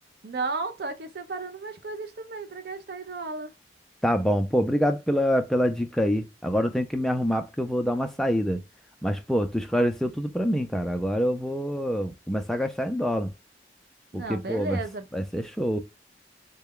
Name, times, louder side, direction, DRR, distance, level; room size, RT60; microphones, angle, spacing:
voice 1, 0.2-3.5 14.1-15.0, right 3 dB, 60° right, 0.5 m, -34 dB
voice 2, 4.0-8.6 9.0-13.3 14.1-14.8 15.1-15.8, equal, 5° left, 0.4 m, -26 dB
3.2 x 2.2 x 3.5 m
head